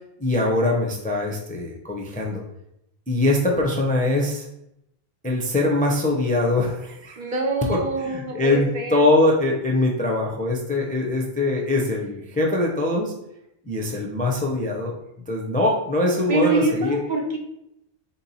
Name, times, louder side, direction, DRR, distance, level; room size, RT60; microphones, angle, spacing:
voice 1, 0.2-2.4 3.1-4.5 5.2-7.2 7.7-13.1 13.7-14.9 15.3-17.0, left 2 dB, 15° left, -1 dB, 0.4 m, -22 dB
voice 2, 7.2-9.1 16.3-17.4, right 2 dB, 55° right, 1 dB, 0.8 m, -25 dB
3.7 x 2.8 x 4.0 m, 0.82 s
omnidirectional pair, 1.0 m